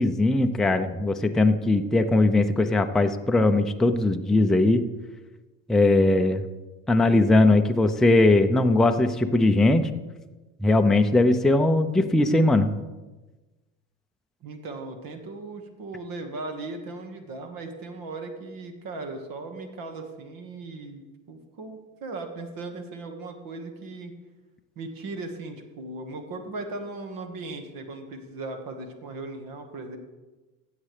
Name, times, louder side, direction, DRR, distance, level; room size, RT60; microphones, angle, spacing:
voice 1, 0.0-4.8 5.7-6.4 6.9-9.9 10.6-12.7, left 2 dB, ahead, 5 dB, 0.6 m, -20 dB
voice 2, 14.4-24.1 24.7-30.0, right 3 dB, 55° right, 5 dB, 1.7 m, -37 dB
16.0 x 7.4 x 3.4 m, 1.2 s
hypercardioid pair, 75°, 41 cm